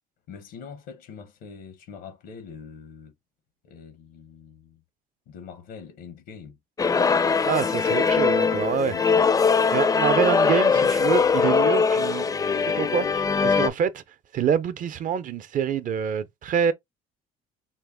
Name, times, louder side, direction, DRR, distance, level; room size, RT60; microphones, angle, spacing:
voice 1, 0.3-3.1 3.6-4.8 5.3-6.6 8.8-9.3 10.2-10.3 10.7-10.9, left 6 dB, 85° left, 0.9 m, -43 dB
sound 1, 6.8-13.7, left 5 dB, 20° left, 0.4 m, -21 dB
voice 2, 7.4-8.9 9.7-12.3 12.6-14.0 14.3-16.7, right 8 dB, 50° right, 0.6 m, -26 dB
4.0 x 2.1 x 3.4 m
cardioid pair, 110°, 17 cm